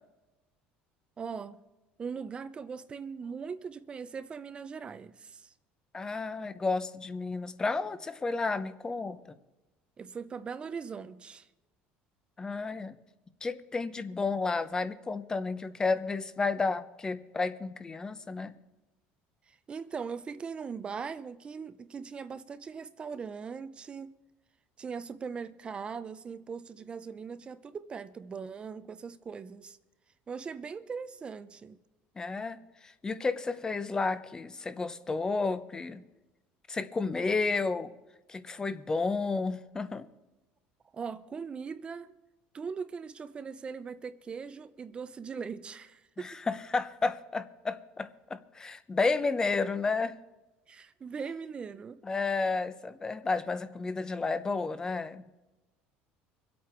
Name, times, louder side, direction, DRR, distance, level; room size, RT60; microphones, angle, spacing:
voice 1, 1.2-1.6 2.0-5.5 10.0-11.5 19.5-24.1 24.8-29.8 30.3-31.8 40.9-42.1 42.5-46.4 50.7-52.0, right 6 dB, 25° right, 0.7 m, -40 dB
voice 2, 5.9-9.2 12.4-12.9 13.4-18.5 32.2-32.6 32.8-36.0 36.7-37.9 38.3-40.1 46.2-50.1 52.0-55.3, left 4 dB, 15° left, 0.9 m, -31 dB
25.0 x 8.5 x 4.5 m
cardioid pair, 130°, 4 cm